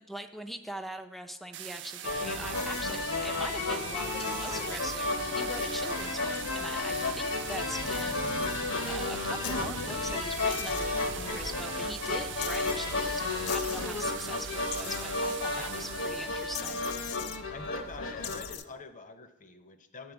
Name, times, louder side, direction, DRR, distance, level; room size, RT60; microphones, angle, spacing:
voice 1, 0.0-8.5 8.9-16.8, equal, ahead, 7 dB, 0.5 m, -42 dB
sound 1, 1.5-17.0, right 12 dB, 55° right, 0.4 m, -42 dB
sound 2, 2.0-18.6, left 3 dB, 65° left, 1.0 m, -33 dB
sound 3, 2.5-3.3 4.2-4.8 6.3-7.1 7.9-8.6 9.4-9.6 10.5-10.9 12.4-12.8 13.5-13.8 14.7-15.6 16.6-17.4 18.2-18.7, left 11 dB, 85° left, 0.5 m, -42 dB
voice 2, 17.5-20.1, left 3 dB, 35° left, 9 dB, 0.7 m, -45 dB
10.5 x 4.2 x 7.1 m, 0.93 s
head